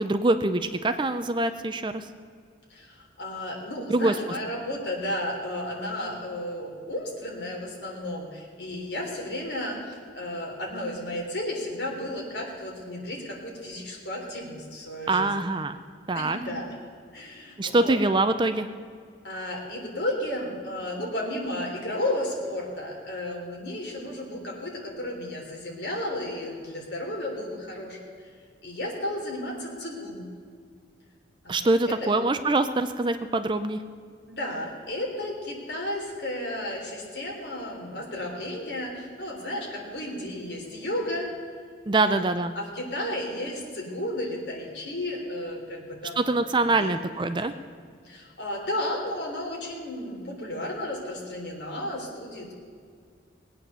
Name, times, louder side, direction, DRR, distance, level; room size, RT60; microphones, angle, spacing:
voice 1, 0.0-2.1 3.9-4.1 15.1-15.8 16.1-16.4 17.6-18.7 31.5-33.8 41.9-42.5 46.2-47.5, right 2 dB, 25° right, 10 dB, 0.4 m, -24 dB
voice 2, 2.7-15.3 16.1-16.7 17.1-18.0 19.2-28.3 28.6-30.3 31.4-32.1 34.3-41.3 42.0-46.3 46.7-46.9 47.4-47.6 48.0-52.5, left 1 dB, 60° left, -1 dB, 3.4 m, -33 dB
19.5 x 8.9 x 6.8 m, 2.1 s
head